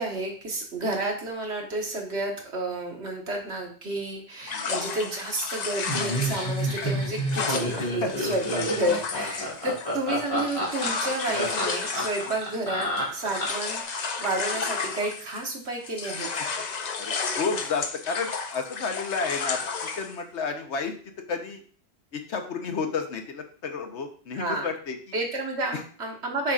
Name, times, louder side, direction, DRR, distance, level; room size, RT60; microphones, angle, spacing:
voice 1, 0.0-16.3 24.3-24.7 25.1-26.5, right 2 dB, 75° right, 0 dB, 1.7 m, -31 dB
sound 1, 4.5-15.6 15.8-20.2, left 5 dB, 45° left, 0.7 m, -33 dB
Laughter, 5.9-13.7, equal, 30° left, 2.1 m, -29 dB
voice 2, 17.0-19.6 20.0-21.6 22.1-25.0, left 5 dB, 80° left, 5 dB, 1.2 m, -31 dB
7.2 x 5.5 x 2.5 m, 0.43 s
omnidirectional pair, 1.1 m